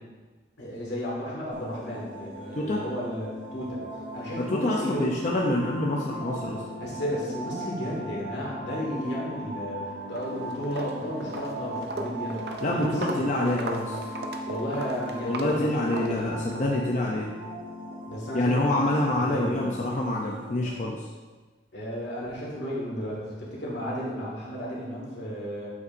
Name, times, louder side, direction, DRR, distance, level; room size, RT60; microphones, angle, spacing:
voice 1, 0.6-3.8 4.1-5.1 6.8-12.5 12.7-13.4 14.4-15.9 18.1-18.9 19.1-19.7 21.7-25.7, equal, 75° left, -5 dB, 1.9 m, -33 dB
sound 1, 1.5-20.7, right 1 dB, 85° right, 1.4 m, -38 dB
voice 2, 4.4-6.6 12.6-14.0 15.2-17.4 18.3-21.1, left 1 dB, 40° left, -2 dB, 0.5 m, -26 dB
Walk footsteps, 10.0-10.3 10.6-16.7, right 2 dB, 60° right, 0.5 m, -37 dB
7.9 x 5.4 x 2.6 m, 1.3 s
head